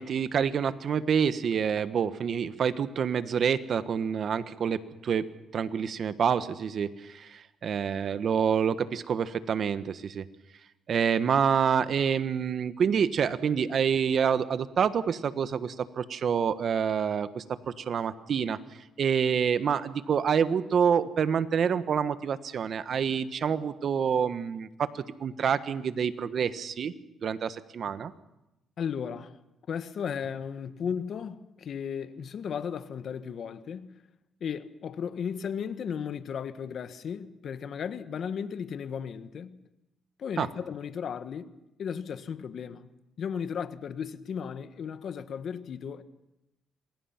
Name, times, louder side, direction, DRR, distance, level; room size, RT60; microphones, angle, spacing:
voice 1, 0.0-5.3 5.5-10.2 10.9-18.6 19.0-26.9 27.2-28.1 40.4-40.5, right 7 dB, 55° right, 1.3 m, -27 dB
voice 2, 28.8-29.3 29.7-34.0 34.4-39.7 40.2-41.5 41.8-42.9 43.2-46.0, left 7 dB, 60° left, 1.4 m, -35 dB
27.0 x 20.5 x 5.9 m
cardioid pair, 90°, 0 cm